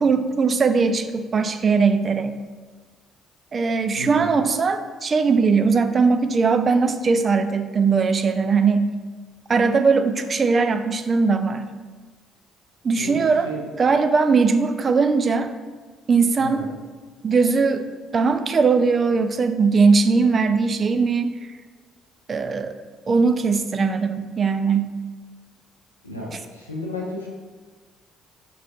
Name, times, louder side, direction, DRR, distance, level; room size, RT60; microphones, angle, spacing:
voice 1, 0.0-2.4 3.5-8.9 9.5-11.7 12.8-13.5 13.8-15.5 16.1-16.7 17.2-17.8 18.1-21.3 22.3-22.7 23.1-24.9, right 4 dB, 35° right, 8 dB, 0.3 m, -20 dB
voice 2, 4.0-4.3 13.0-13.6 16.4-16.7 26.0-27.3, left 1 dB, 90° left, -3 dB, 0.5 m, -33 dB
6.2 x 2.4 x 2.4 m, 1.4 s
figure-of-eight pair, 50°, 0 cm